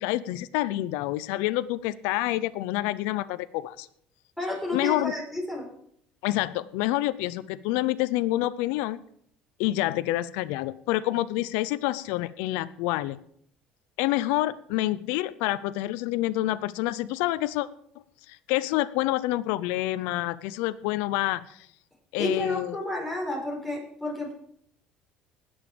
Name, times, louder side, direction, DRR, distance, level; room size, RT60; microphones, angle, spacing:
voice 1, 0.0-3.9 4.7-5.1 6.2-9.0 9.6-13.2 14.0-17.7 18.3-21.7 22.1-22.8, left 16 dB, 85° left, 15 dB, 0.5 m, -27 dB
voice 2, 4.4-5.7 22.2-24.3, left 1 dB, 5° left, -3 dB, 5.2 m, -31 dB
19.5 x 7.1 x 5.1 m, 0.65 s
cardioid pair, 105°, 3 cm